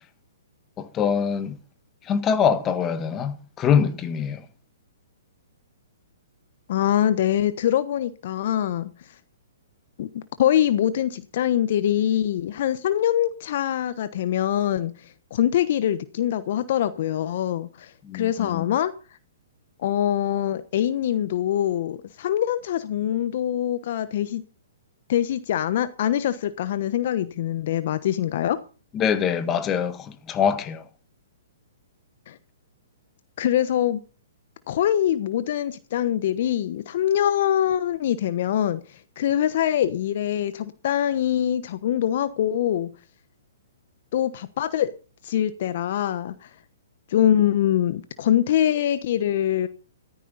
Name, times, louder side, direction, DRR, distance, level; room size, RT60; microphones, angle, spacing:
voice 1, 0.8-1.6 2.0-4.4 18.0-18.7 28.9-30.8, left 7 dB, 25° left, 1.6 m, -24 dB
voice 2, 6.7-8.9 10.0-14.9 15.3-18.9 19.8-24.4 25.1-28.6 32.3-32.4 33.4-34.0 34.7-38.8 39.2-42.9 44.1-44.9 45.2-46.5 47.1-49.7, left 11 dB, 55° left, 1.1 m, -24 dB
14.5 x 13.5 x 4.1 m
hypercardioid pair, 125°, 0 cm